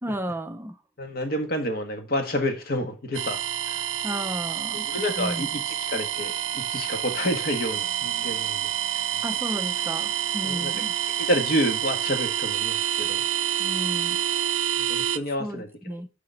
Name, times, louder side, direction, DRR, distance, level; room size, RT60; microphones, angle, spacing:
voice 1, 0.0-0.8 4.0-4.8 5.2-5.5 9.2-10.9 13.6-14.2 15.4-16.1, equal, 10° right, 0.5 m, -33 dB
voice 2, 1.0-3.4 3.7-3.8 4.8-8.6 8.9-9.2 10.4-10.8 11.1-13.2 14.8-16.0, equal, 55° left, 1.5 m, -29 dB
sound 1, 3.1-15.2, right 11 dB, 90° right, 0.5 m, -28 dB
6.7 x 5.0 x 5.2 m
head